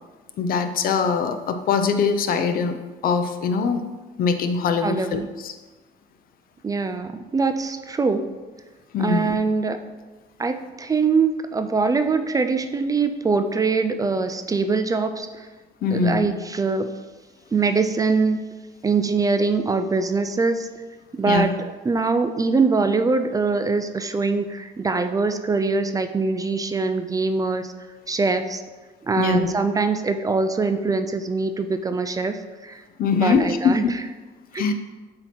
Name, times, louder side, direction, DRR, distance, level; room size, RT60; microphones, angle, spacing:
voice 1, 0.4-2.8 3.0-3.8 4.2-5.5 8.9-9.3 15.8-16.3 21.3-21.5 29.2-29.5 33.0-33.9 34.6-34.7, left 5 dB, 60° left, 8 dB, 0.7 m, -22 dB
voice 2, 4.8-5.3 6.6-8.3 9.0-9.9 10.4-15.5 15.9-16.9 17.5-18.5 18.8-20.7 21.1-27.7 28.1-28.6 29.0-32.8 33.1-33.9 34.5-34.7, right 4 dB, 20° right, 8 dB, 0.4 m, -23 dB
7.6 x 2.9 x 5.9 m, 1.3 s
cardioid pair, 110°, 17 cm